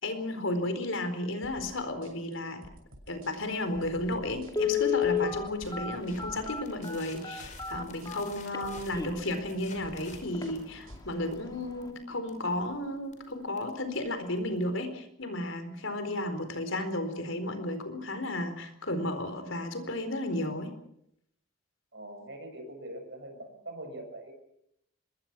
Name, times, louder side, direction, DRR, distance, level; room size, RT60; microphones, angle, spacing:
voice 1, 0.0-2.6 3.1-20.7, left 1 dB, 70° left, 9 dB, 4.3 m, -33 dB
sound 1, 1.4-11.0, equal, 90° right, 6.1 m, -52 dB
Telephone, 3.8-3.9 4.5-9.4 9.9-10.0 10.3-10.5 10.9-11.2 11.5-11.6, left 7 dB, 20° left, 2.4 m, -31 dB
sound 2, 5.6-14.8, left 3 dB, 35° left, 5.6 m, -53 dB
voice 2, 21.9-24.3, right 1 dB, 55° right, 5 dB, 6.5 m, -43 dB
26.0 x 21.5 x 6.1 m, 0.74 s
head